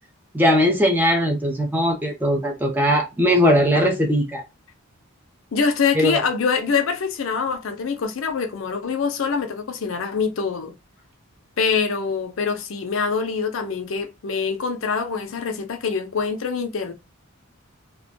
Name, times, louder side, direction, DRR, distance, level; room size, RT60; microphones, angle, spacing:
voice 1, 0.3-4.4 6.0-6.2, equal, 10° right, 0.5 m, -19 dB
voice 2, 5.5-10.7 11.6-16.9, left 5 dB, 65° left, 0.5 m, -24 dB
2.2 x 2.1 x 2.6 m
head